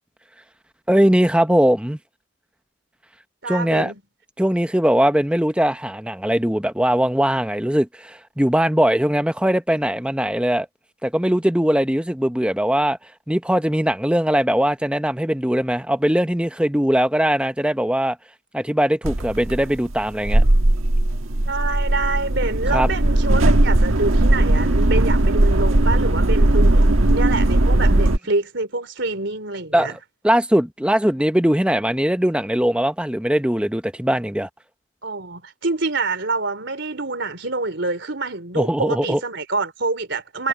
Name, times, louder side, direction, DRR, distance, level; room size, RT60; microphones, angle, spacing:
voice 1, 0.9-2.0 3.5-3.9 4.4-10.7 11.0-13.0 13.3-18.2 18.5-20.4 22.7-22.9 27.9-28.0 29.7-34.5 38.6-39.2, equal, 5° right, 0.8 m, -20 dB
voice 2, 3.4-4.0 21.5-26.8 27.1-29.9 35.0-40.5, right 3 dB, 60° right, 4.0 m, -26 dB
sound 1, 19.0-28.2, right 1 dB, 80° right, 1.5 m, -17 dB
head